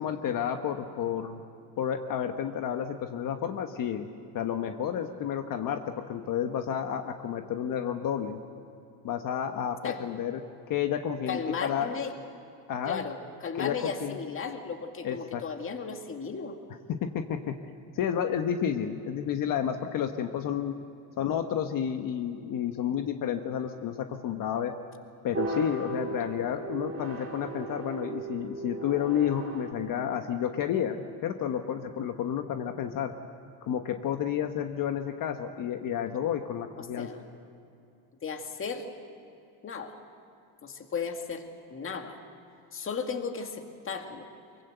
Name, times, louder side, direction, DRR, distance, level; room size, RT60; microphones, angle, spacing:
voice 1, 0.0-1.4 1.8-4.1 4.3-5.8 6.1-8.4 9.0-10.4 10.7-11.9 12.7-13.0 13.5-14.2 15.0-15.4 16.9-17.6 17.9-20.8 21.2-24.7 25.2-33.1 33.6-37.1, left 9 dB, 45° left, 6 dB, 1.2 m, -31 dB
voice 2, 11.3-12.1 12.9-16.6 26.2-26.3 36.8-37.2 38.2-38.9 39.6-40.0 40.6-42.2 42.7-44.3, left 5 dB, 30° left, 5 dB, 2.1 m, -35 dB
sound 1, 25.3-29.7, right 2 dB, 30° right, 3.1 m, -36 dB
24.0 x 23.0 x 8.0 m, 2.7 s
cardioid pair, 140°, 44 cm